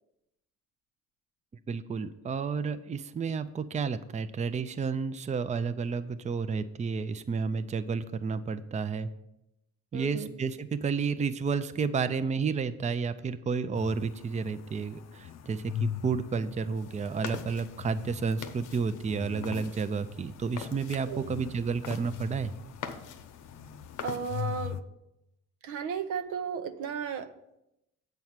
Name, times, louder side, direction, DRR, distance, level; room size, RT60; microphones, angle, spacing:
voice 1, 1.7-9.1 9.9-22.5, right 5 dB, 25° right, 12 dB, 0.5 m, -31 dB
voice 2, 9.9-10.3 21.1-21.2 24.0-24.8 25.6-27.3, right 6 dB, 90° right, 8 dB, 0.8 m, -34 dB
sound 1, 13.7-24.8, left 9 dB, 60° left, 0.5 m, -42 dB
sound 2, 16.7-24.7, left 7 dB, 90° left, 0.8 m, -44 dB
7.9 x 4.6 x 7.3 m, 0.86 s
cardioid pair, 90°, 30 cm